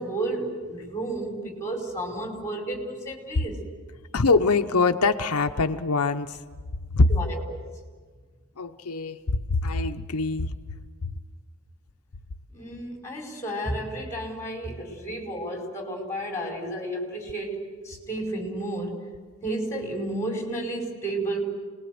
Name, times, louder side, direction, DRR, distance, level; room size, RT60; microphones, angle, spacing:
voice 1, 0.0-3.6 7.1-7.6 12.5-19.0 19.4-21.4, right 1 dB, 15° left, 1 dB, 5.1 m, -32 dB
voice 2, 4.1-6.4 6.9-7.1 8.6-9.2 9.5-10.5, left 3 dB, 85° left, 6 dB, 0.9 m, -23 dB
28.0 x 20.5 x 7.9 m, 1.5 s
head